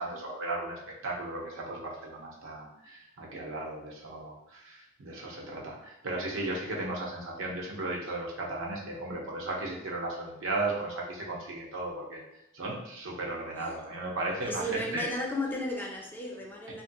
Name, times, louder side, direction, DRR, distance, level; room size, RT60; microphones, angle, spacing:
voice 1, 0.0-12.2 12.5-14.6 14.9-15.0, right 2 dB, 80° right, -2 dB, 0.7 m, -35 dB
voice 2, 14.4-16.8, left 1 dB, 10° left, -1 dB, 0.4 m, -34 dB
2.9 x 2.6 x 2.6 m, 0.80 s
head